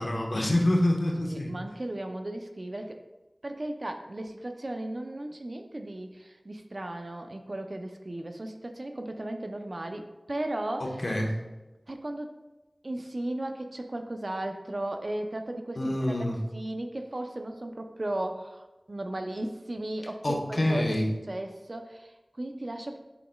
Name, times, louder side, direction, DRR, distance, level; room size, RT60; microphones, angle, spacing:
voice 1, 0.0-1.5 10.8-11.3 15.8-16.4 20.2-21.1, left 1 dB, 65° left, 0 dB, 1.2 m, -26 dB
voice 2, 1.2-3.0 3.4-11.0 11.9-12.3 12.8-16.1 16.5-23.0, right 1 dB, 60° right, 5 dB, 0.7 m, -36 dB
9.4 x 5.9 x 2.4 m, 1.1 s
wide cardioid pair, 40°, 0 cm